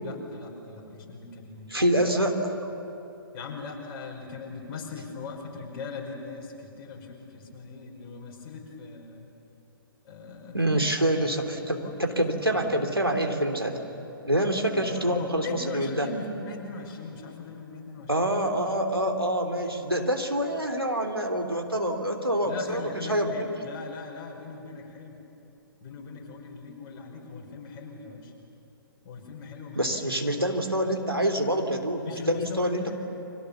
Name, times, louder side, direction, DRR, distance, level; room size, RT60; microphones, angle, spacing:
voice 1, 0.0-1.7 3.3-9.3 10.0-10.9 11.1-12.2 12.6-13.1 14.9-18.3 22.4-25.2 25.8-28.3 29.0-30.5 32.0-32.9, left 4 dB, 30° left, -1 dB, 5.3 m, -40 dB
voice 2, 1.7-2.5 10.5-13.8 14.2-16.1 18.1-23.5 29.7-32.8, right 1 dB, 90° right, 3 dB, 3.1 m, -26 dB
30.0 x 24.5 x 7.1 m, 3.0 s
figure-of-eight pair, 120°, 12 cm